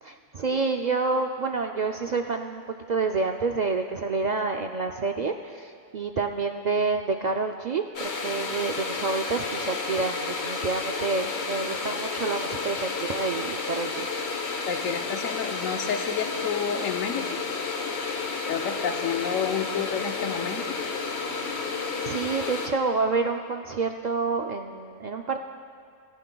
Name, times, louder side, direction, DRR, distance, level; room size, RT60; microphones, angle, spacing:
voice 1, 0.0-14.1 22.0-25.4, right 4 dB, 75° right, 4 dB, 0.4 m, -28 dB
sound 1, 7.9-22.7, left 4 dB, 55° left, 1.3 m, -31 dB
voice 2, 14.7-17.2 18.5-20.7, left 7 dB, 90° left, 5 dB, 1.2 m, -30 dB
17.5 x 16.0 x 2.3 m, 2.4 s
omnidirectional pair, 1.3 m